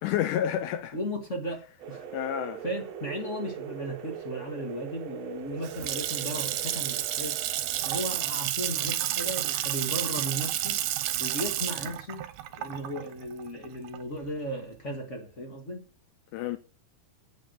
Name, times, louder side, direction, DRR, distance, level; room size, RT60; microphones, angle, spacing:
voice 1, 0.0-1.0 2.1-2.6 16.3-16.6, left 10 dB, 80° left, 2.1 m, -29 dB
voice 2, 0.9-2.2 2.6-7.4 7.8-10.8 11.2-12.3 12.5-15.8, equal, 40° left, 1.0 m, -36 dB
sound 1, 1.8-8.4, right 8 dB, 65° right, 1.9 m, -41 dB
Water tap faucet / Sink (filling or washing) / Splash splatter, 5.4-14.3, right 13 dB, 80° right, 2.3 m, -31 dB
9.2 x 5.2 x 7.6 m
omnidirectional pair, 3.7 m